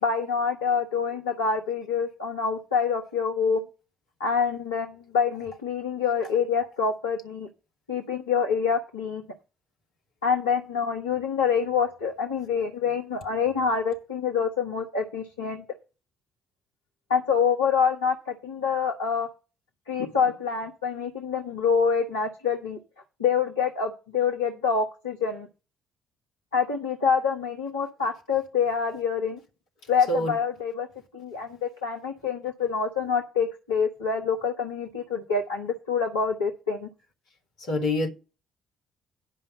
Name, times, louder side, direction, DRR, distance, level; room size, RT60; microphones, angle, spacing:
voice 1, 0.0-3.6 4.2-7.5 7.9-9.2 10.2-15.6 17.1-19.3 19.9-22.8 23.2-25.5 26.5-29.4 29.9-30.9 31.1-36.9, left 6 dB, 80° left, 1.1 m, -26 dB
voice 2, 37.6-38.1, left 1 dB, 65° left, 2.1 m, -25 dB
10.5 x 5.4 x 6.6 m
figure-of-eight pair, 45°, 0 cm